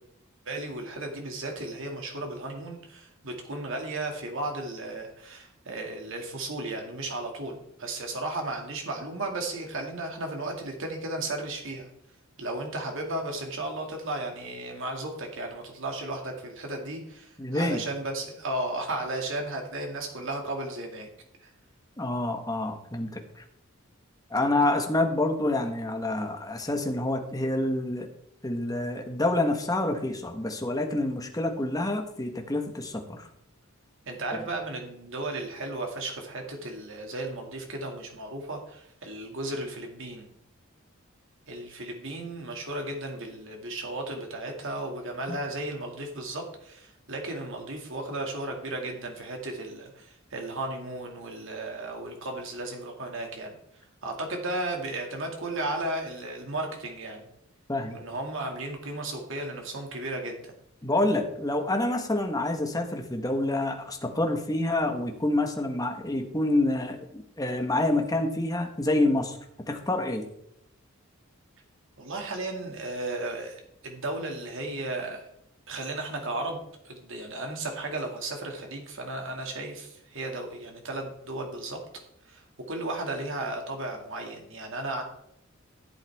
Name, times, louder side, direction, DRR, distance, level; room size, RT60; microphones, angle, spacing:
voice 1, 0.5-11.9 12.4-21.1 21.4-21.5 34.1-40.3 41.5-53.5 54.0-57.3 57.9-60.5 72.0-75.3 75.7-76.6 76.8-81.8 82.3-82.4 82.7-85.0, right 2 dB, 65° right, 2 dB, 2.3 m, -34 dB
voice 2, 17.4-17.8 22.0-23.2 24.3-28.1 28.4-33.3 57.7-58.0 60.8-69.4 69.7-70.2, left 2 dB, 15° left, 4 dB, 1.4 m, -27 dB
14.5 x 8.2 x 3.6 m, 0.75 s
head